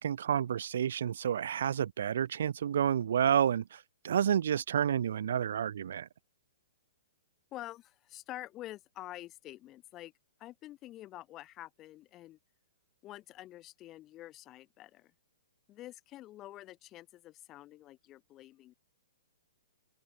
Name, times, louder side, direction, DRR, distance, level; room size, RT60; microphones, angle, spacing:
voice 1, 0.0-6.1, right 9 dB, 70° right, 0.5 m, -30 dB
voice 2, 7.5-10.1 10.4-12.4 13.0-15.1 15.7-18.7, left 15 dB, 25° left, 2.9 m, -48 dB
open air
hypercardioid pair, 150°, 0 cm